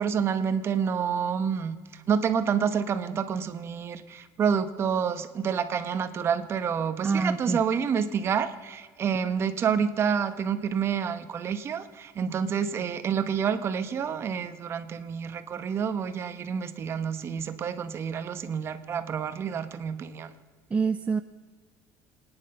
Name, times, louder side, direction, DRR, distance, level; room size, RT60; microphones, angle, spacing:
voice 1, 0.0-20.3, right 7 dB, 35° right, 10 dB, 1.1 m, -28 dB
voice 2, 7.0-7.6 20.7-21.2, right 5 dB, 20° right, 10 dB, 0.4 m, -26 dB
26.5 x 10.0 x 5.5 m, 1.5 s
cardioid pair, 140°, 7 cm